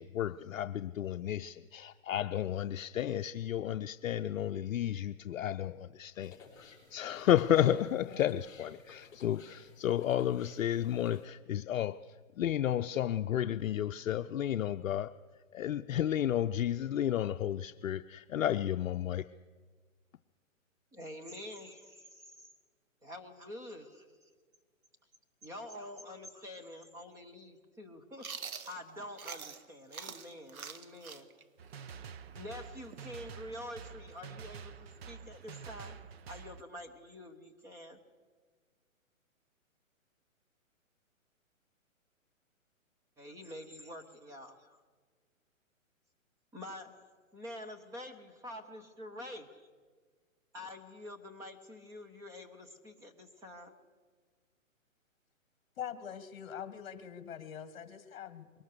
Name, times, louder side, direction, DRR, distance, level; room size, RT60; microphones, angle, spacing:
voice 1, 0.0-6.6 6.9-15.2 15.5-19.3, left 11 dB, 70° left, 0.6 m, -32 dB
sound 1, 6.2-11.3, left 5 dB, 10° left, 4.7 m, -56 dB
voice 2, 20.9-22.5 23.0-24.1 25.4-31.3 32.3-36.0 36.3-38.0 43.2-44.8 46.5-47.1 47.3-49.7 50.5-53.7, left 1 dB, 5° right, 1.0 m, -47 dB
Chewing mastication, 28.2-29.6 29.9-33.5, right 6 dB, 90° right, 1.4 m, -45 dB
sound 2, 31.6-36.6, right 6 dB, 50° right, 0.9 m, -48 dB
voice 3, 55.8-58.6, left 9 dB, 45° left, 1.7 m, -43 dB
22.0 x 19.0 x 6.7 m
hypercardioid pair, 150°, 41 cm